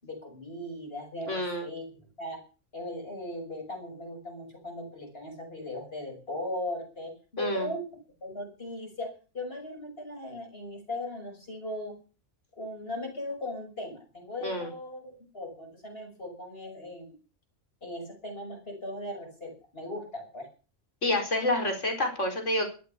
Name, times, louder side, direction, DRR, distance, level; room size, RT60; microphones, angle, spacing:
voice 1, 0.0-2.4 2.7-7.9 8.2-11.9 12.6-17.1 17.8-20.5, left 1 dB, 50° left, 2 dB, 6.5 m, -38 dB
voice 2, 1.3-1.7 7.4-7.7 14.4-14.7 21.0-22.7, left 1 dB, 75° left, 4 dB, 5.0 m, -28 dB
14.5 x 13.0 x 6.9 m, 0.36 s
omnidirectional pair, 1.3 m